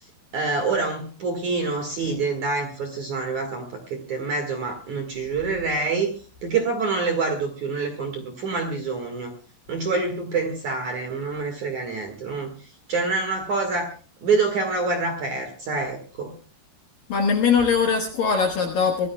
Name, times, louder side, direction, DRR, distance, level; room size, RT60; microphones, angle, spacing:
voice 1, 0.3-6.1 6.4-9.3 9.7-13.9 14.2-16.3, right 4 dB, 55° right, 2.3 m, -26 dB
voice 2, 17.1-19.1, left 5 dB, 65° left, 2.3 m, -21 dB
25.0 x 17.0 x 2.3 m
omnidirectional pair, 5.8 m